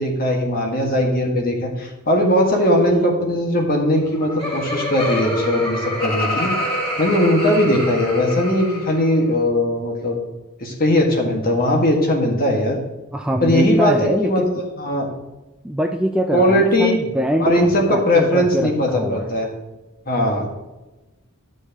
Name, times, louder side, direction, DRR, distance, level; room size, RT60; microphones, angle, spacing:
voice 1, 0.0-6.5 7.0-10.2 10.6-12.8 13.4-15.1 16.3-17.0 17.4-19.5 20.1-20.4, left 1 dB, 40° left, 0 dB, 1.8 m, -19 dB
Laughter, 4.0-9.1, left 1 dB, 20° left, 2.8 m, -26 dB
voice 2, 13.1-14.6 15.6-19.3, equal, 5° right, 3 dB, 0.4 m, -23 dB
12.0 x 6.2 x 3.0 m, 1.1 s
head